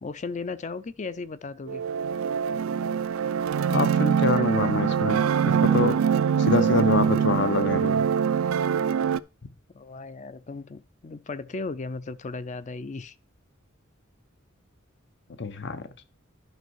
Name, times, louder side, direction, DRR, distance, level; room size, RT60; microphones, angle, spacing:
voice 1, 0.0-1.9 9.7-13.2, left 3 dB, 35° left, 0.5 m, -36 dB
sound 1, 1.7-9.2, right 7 dB, 90° right, 0.3 m, -23 dB
voice 2, 3.7-6.0 6.4-8.0 15.4-15.9, left 3 dB, 60° left, 0.8 m, -26 dB
10.5 x 5.4 x 4.6 m
head